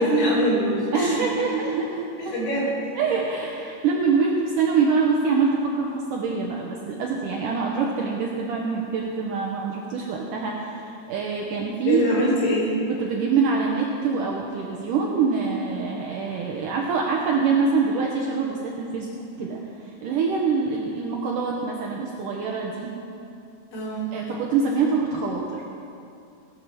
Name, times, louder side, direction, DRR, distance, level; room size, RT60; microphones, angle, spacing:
voice 1, 0.0-1.2 2.2-2.8 11.9-12.8 23.7-24.2, equal, 70° left, -7 dB, 5.6 m, -23 dB
voice 2, 0.9-2.3 3.0-12.0 13.0-22.9 24.1-25.6, right 5 dB, 70° right, -1 dB, 2.2 m, -25 dB
18.5 x 8.2 x 6.3 m, 2.6 s
omnidirectional pair, 4.5 m